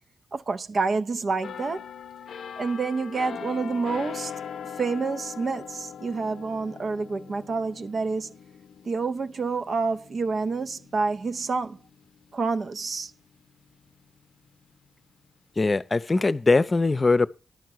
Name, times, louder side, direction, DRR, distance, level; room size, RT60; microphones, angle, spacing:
voice 1, 0.3-1.9 2.6-4.3 4.8-8.3 8.9-11.8 12.3-13.1, right 4 dB, 60° right, 0.5 m, -28 dB
sound 1, 1.4-13.0 13.4-13.6, left 8 dB, 80° left, 0.5 m, -41 dB
voice 2, 15.6-17.3, left 3 dB, 35° left, 0.6 m, -21 dB
11.0 x 4.6 x 7.8 m
cardioid pair, 50°, 0 cm